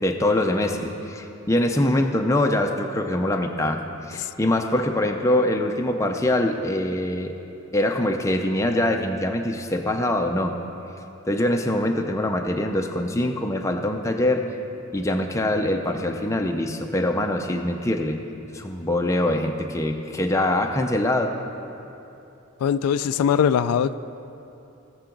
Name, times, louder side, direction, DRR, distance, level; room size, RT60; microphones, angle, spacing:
voice 1, 0.0-7.4 7.7-10.6 11.3-14.4 14.9-18.2 18.5-21.4, left 1 dB, 15° left, 4 dB, 0.5 m, -23 dB
voice 2, 22.6-23.9, left 8 dB, 90° left, 13 dB, 0.3 m, -21 dB
17.5 x 7.0 x 3.9 m, 2.9 s
head